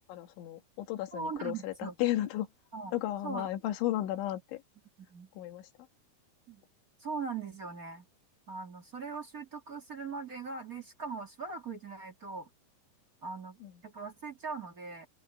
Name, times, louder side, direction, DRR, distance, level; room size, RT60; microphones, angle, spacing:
voice 1, 0.1-2.5 2.9-4.6 5.4-5.7 13.6-13.7, left 14 dB, 80° left, 4.2 m, -34 dB
voice 2, 1.1-1.9 2.7-2.9 3.2-3.5 5.0-5.3 6.5-6.6 7.0-8.1 8.5-12.5 13.2-15.1, right 4 dB, 35° right, 1.4 m, -40 dB
open air
omnidirectional pair, 5.4 m